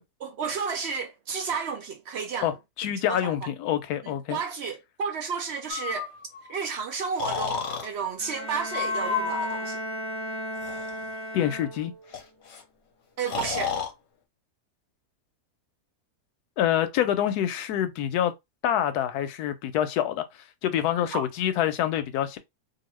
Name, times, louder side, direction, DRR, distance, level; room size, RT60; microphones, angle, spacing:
voice 1, 0.2-2.5 3.1-3.3 4.3-6.1 6.5-9.8 13.2-13.7 21.1-21.3, right 6 dB, 70° right, 0.6 m, -32 dB
voice 2, 2.4-4.4 11.3-11.9 16.6-18.3 18.6-20.2 20.6-22.4, left 11 dB, 80° left, 1.1 m, -26 dB
Breathing, 5.7-6.5 7.2-7.9 8.7-9.6 10.5-10.9 12.1-12.2 12.5-12.6 13.3-13.9, left 6 dB, 55° left, 0.9 m, -30 dB
Bowed string instrument, 8.2-12.1, equal, 30° left, 0.6 m, -35 dB
2.9 x 2.5 x 3.0 m
omnidirectional pair, 1.7 m